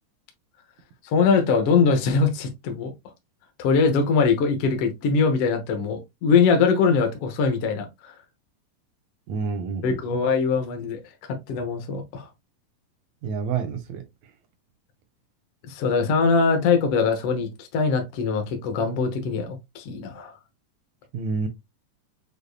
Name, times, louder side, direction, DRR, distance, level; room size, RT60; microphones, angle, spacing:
voice 1, 1.0-2.9 3.6-8.1 9.8-11.0 11.3-12.3 15.7-20.3, left 5 dB, 65° left, 1.5 m, -22 dB
voice 2, 9.3-10.2 13.2-14.0 21.1-21.5, right 5 dB, 75° right, 1.7 m, -28 dB
6.6 x 2.7 x 2.3 m
omnidirectional pair, 3.7 m